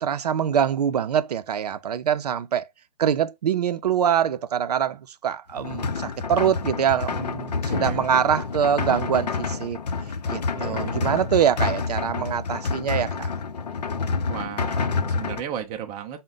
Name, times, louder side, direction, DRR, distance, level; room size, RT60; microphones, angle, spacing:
voice 1, 0.0-2.7 3.0-9.8 10.3-13.3, right 8 dB, 75° right, 0.5 m, -24 dB
sound 1, 5.5-15.4, left 4 dB, 85° left, 0.6 m, -28 dB
voice 2, 7.6-8.4 10.5-11.1 14.3-16.2, right 9 dB, 15° right, 0.4 m, -35 dB
3.8 x 2.1 x 3.7 m
hypercardioid pair, 140°, 20 cm